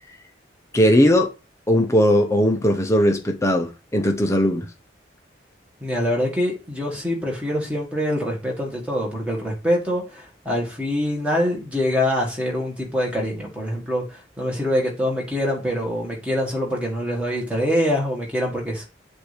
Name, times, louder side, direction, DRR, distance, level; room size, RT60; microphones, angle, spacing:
voice 1, 0.7-1.3 1.7-4.7, equal, 15° left, 0.8 m, -18 dB
voice 2, 5.8-18.9, equal, 5° right, 1.6 m, -24 dB
7.6 x 2.8 x 5.0 m
head